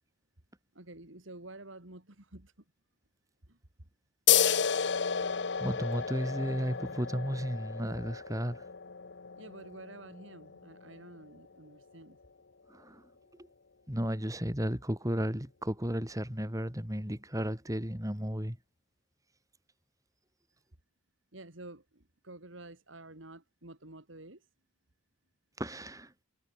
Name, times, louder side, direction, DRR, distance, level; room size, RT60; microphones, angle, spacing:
voice 1, 0.7-2.5 3.5-3.6 9.4-12.2 21.3-24.4, right 2 dB, 70° right, 3.3 m, -50 dB
sound 1, 4.3-11.4, left 8 dB, 60° left, 0.9 m, -32 dB
voice 2, 5.3-8.7 12.7-13.5 13.9-18.6 25.6-26.1, equal, 15° right, 3.8 m, -34 dB
head